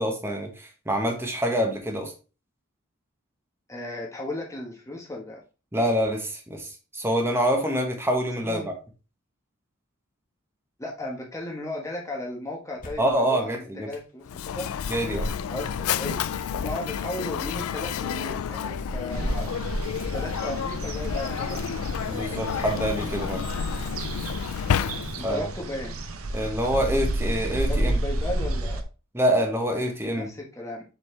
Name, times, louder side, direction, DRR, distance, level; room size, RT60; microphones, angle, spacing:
voice 1, 0.0-2.1 5.7-8.7 13.0-13.9 14.9-15.3 22.0-23.4 25.2-25.5 26.3-28.0 29.1-30.3, equal, 10° right, 2 dB, 1.1 m, -26 dB
voice 2, 3.7-5.4 8.4-8.7 10.8-14.7 15.5-19.5 20.1-21.9 22.1-22.7 25.2-26.0 27.7-28.9 30.1-30.8, left 1 dB, 15° left, -1 dB, 1.2 m, -36 dB
sound 1, 12.8-13.2 13.9-14.0 15.1-15.8 16.4-16.5 18.7-19.2 19.8-19.9 21.0-21.4 21.9-22.0 23.0-23.6, equal, 40° left, 1.4 m, -37 dB
Mechanisms, 14.3-25.4, left 8 dB, 85° left, 0.4 m, -30 dB
sound 2, 19.1-28.8, right 1 dB, 75° right, 0.8 m, -31 dB
7.0 x 4.3 x 3.2 m, 0.32 s
head